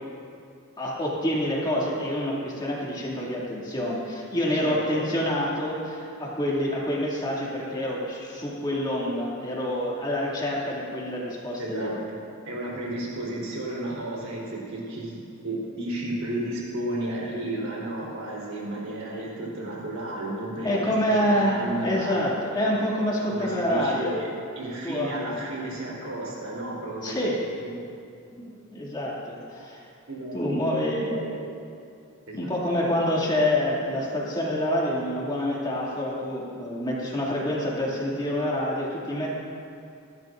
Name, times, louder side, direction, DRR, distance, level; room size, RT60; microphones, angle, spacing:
voice 1, 0.8-11.9 19.1-19.2 20.6-24.1 24.8-25.2 27.0-27.4 28.3-29.8 30.3-31.2 32.3-39.4, left 1 dB, 20° left, -5 dB, 2.5 m, -27 dB
voice 2, 4.5-5.0 11.6-12.0 12.5-15.2 15.4-22.3 23.3-24.3 24.6-27.2 27.6-27.7 30.1-30.6 31.0-31.4 32.3-32.5, right 1 dB, 85° right, -4 dB, 4.0 m, -33 dB
26.5 x 12.5 x 2.6 m, 2.5 s
head